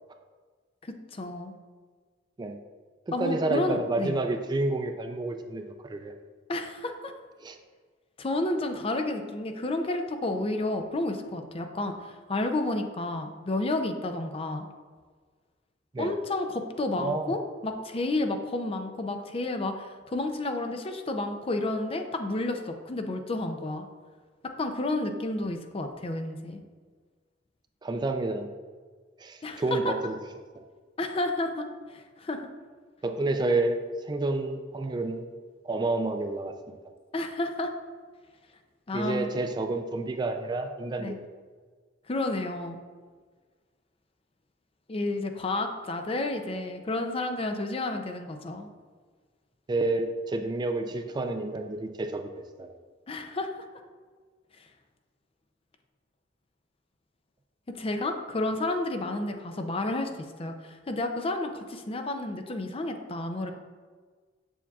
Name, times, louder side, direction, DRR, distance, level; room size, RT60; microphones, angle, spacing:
voice 1, 0.8-1.5 3.1-4.1 6.5-7.1 8.2-14.7 16.0-23.9 24.6-26.6 29.4-29.9 31.0-32.5 37.1-37.7 38.9-39.3 41.0-41.2 42.1-42.8 44.9-48.7 53.1-53.5 57.8-60.1 60.4-63.5, left 2 dB, 30° left, 6 dB, 0.5 m, -31 dB
voice 2, 3.1-6.1 7.4-7.6 15.9-16.1 17.0-17.3 27.8-28.5 29.2-30.2 30.5-30.6 33.0-35.3 35.6-36.8 38.9-41.3 49.7-52.7, right 2 dB, 25° right, 6 dB, 0.3 m, -29 dB
7.1 x 7.0 x 2.3 m, 1.5 s
head